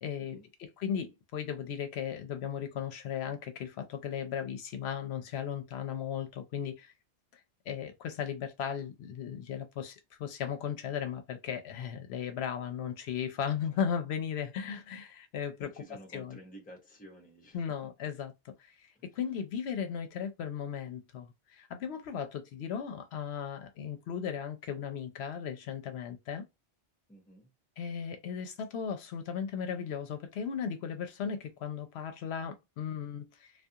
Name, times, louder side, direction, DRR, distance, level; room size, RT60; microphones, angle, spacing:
voice 1, 0.0-6.9 7.3-7.4 7.7-15.7 16.1-16.4 17.5-18.9 19.1-26.5 27.8-33.5, left 8 dB, 75° left, 0.8 m, -36 dB
voice 2, 15.6-17.9 18.9-19.0 27.1-27.5, right 1 dB, 10° left, 0.6 m, -52 dB
2.3 x 2.3 x 2.7 m
omnidirectional pair, 1.1 m